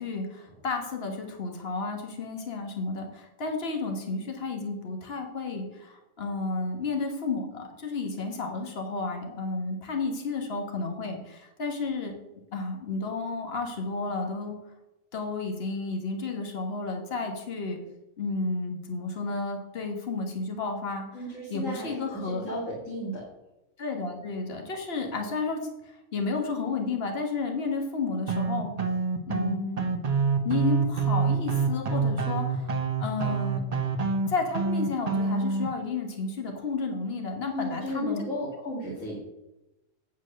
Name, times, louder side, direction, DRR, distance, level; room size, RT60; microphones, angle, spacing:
voice 1, 0.0-12.1 12.5-14.6 15.1-17.8 18.2-22.4 23.8-28.7 29.3-29.9 30.4-32.7 33.0-33.7 34.3-38.2, left 3 dB, 50° left, 2 dB, 1.7 m, -32 dB
voice 2, 21.1-23.3 37.5-39.2, equal, 75° left, -5 dB, 2.5 m, -34 dB
sound 1, 28.3-35.7, right 4 dB, 35° right, 0.8 m, -27 dB
9.3 x 4.6 x 6.5 m, 0.96 s
omnidirectional pair, 1.4 m